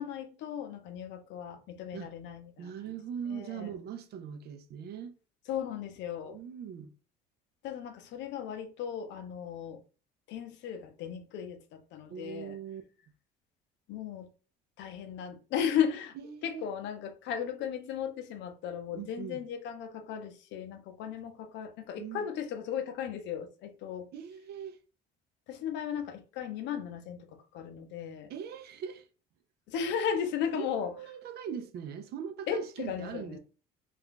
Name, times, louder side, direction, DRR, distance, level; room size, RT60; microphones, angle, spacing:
voice 1, 0.0-2.9 3.3-3.7 5.5-6.4 7.6-9.8 10.3-12.6 13.9-14.3 14.8-16.2 16.4-24.1 25.5-28.3 29.7-30.9 32.5-33.4, left 8 dB, 70° left, 0.6 m, -36 dB
voice 2, 2.6-5.2 6.2-6.9 12.1-12.8 16.2-16.7 18.9-19.4 22.0-22.3 24.1-24.8 28.3-29.1 30.5-33.4, right 8 dB, 55° right, 0.5 m, -41 dB
2.5 x 2.3 x 3.7 m
supercardioid pair, 85°, 19 cm